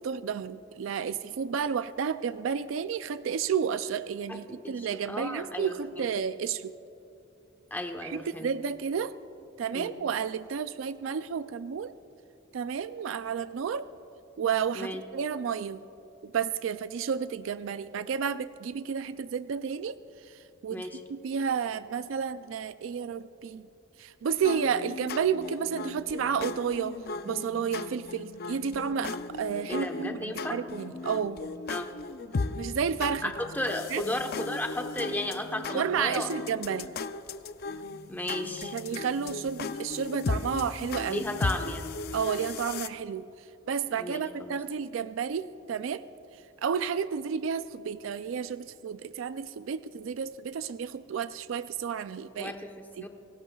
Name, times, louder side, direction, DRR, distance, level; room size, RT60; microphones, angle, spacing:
voice 1, 0.0-6.7 8.0-9.1 9.6-11.9 12.5-13.9 14.4-15.8 16.2-23.7 24.0-31.4 32.6-33.3 33.9-34.0 35.7-36.9 38.6-41.2 42.1-46.0 46.6-52.5 53.0-53.1, right 7 dB, 80° right, 13 dB, 0.4 m, -31 dB
voice 2, 4.3-5.8 7.7-8.5 9.7-9.9 14.7-15.0 20.7-21.0 29.7-30.6 31.7-31.9 33.2-36.3 36.7-36.8 38.1-38.7 41.1-42.0 44.0-44.6 52.4-53.1, left 1 dB, 10° left, 4 dB, 1.0 m, -34 dB
sound 1, 24.4-42.9, left 3 dB, 50° left, 0.5 m, -37 dB
29.0 x 16.5 x 2.3 m, 2.8 s
head